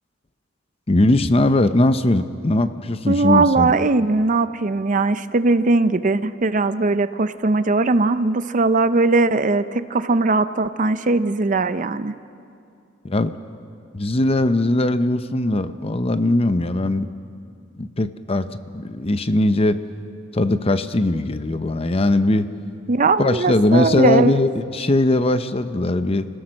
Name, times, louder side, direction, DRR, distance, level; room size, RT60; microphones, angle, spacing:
voice 1, 0.9-3.7 13.0-13.3 13.9-17.1 17.8-18.5 18.7-19.8 20.3-22.5 23.2-26.3, left 2 dB, 30° left, 11 dB, 0.7 m, -20 dB
voice 2, 3.1-12.1 22.9-24.4, right 3 dB, 40° right, 13 dB, 0.6 m, -19 dB
30.0 x 16.5 x 6.4 m, 2.5 s
head